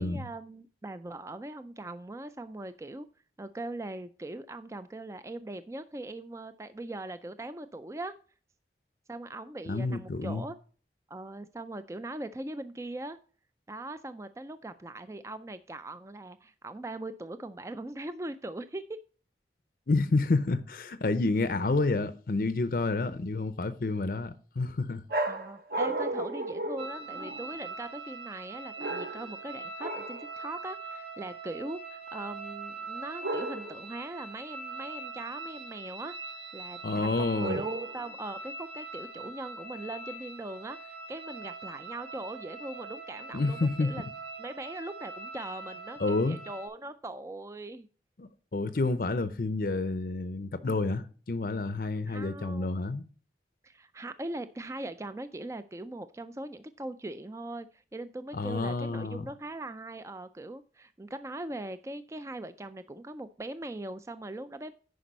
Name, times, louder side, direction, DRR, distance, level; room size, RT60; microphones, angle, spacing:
voice 1, 0.0-3.1 3.4-8.2 9.1-10.6 11.1-13.2 13.7-19.0 25.3-36.2 36.5-44.0 44.4-47.9 52.1-52.8 53.6-64.7, right 2 dB, 15° right, 0.3 m, -40 dB
voice 2, 9.7-10.5 19.9-25.0 36.8-37.6 43.3-43.9 46.0-46.4 48.2-53.0 58.3-59.3, left 3 dB, 50° left, 0.6 m, -29 dB
sound 1, 25.1-27.6 28.8-29.4 29.8-30.3 33.2-33.9 37.4-38.1, right 2 dB, 55° right, 1.2 m, -34 dB
sound 2, 26.8-46.7, right 3 dB, 85° right, 2.1 m, -42 dB
10.0 x 5.2 x 5.3 m
head